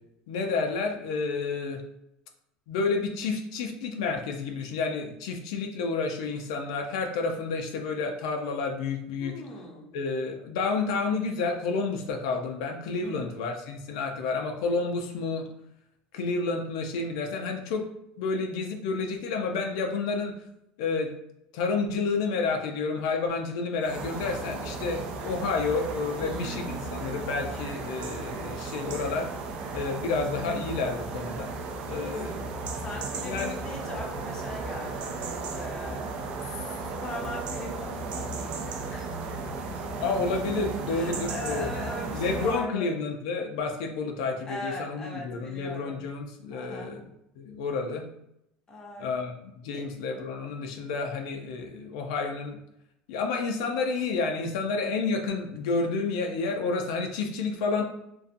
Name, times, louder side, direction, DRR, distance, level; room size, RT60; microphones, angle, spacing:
voice 1, 0.3-1.8 2.7-9.3 9.9-15.5 16.1-17.8 18.2-20.3 20.8-21.1 21.5-29.3 29.7-31.5 31.8-32.5 33.2-33.6 40.0-41.7 42.1-47.1 47.4-48.0 49.0-52.6 53.1-57.8, left 4 dB, 85° left, 3 dB, 0.4 m, -30 dB
voice 2, 9.2-9.9 13.0-13.3 26.1-26.7 32.8-39.3 40.9-42.9 44.5-46.1 46.5-47.0 48.7-49.1 49.6-49.9, left 1 dB, 20° left, -2 dB, 0.6 m, -40 dB
sound 1, 23.8-42.7, right 4 dB, 40° right, 0.3 m, -35 dB
2.5 x 2.2 x 2.5 m, 0.79 s
cardioid pair, 155°, 3 cm